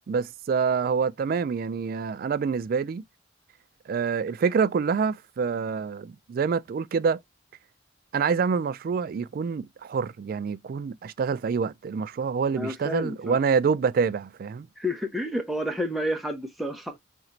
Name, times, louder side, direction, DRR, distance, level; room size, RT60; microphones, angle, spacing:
voice 1, 0.1-3.0 3.9-7.2 8.1-14.7, right 5 dB, 50° right, 0.3 m, -26 dB
voice 2, 12.6-13.4 14.8-17.0, equal, ahead, 0.6 m, -30 dB
4.5 x 2.8 x 2.5 m
head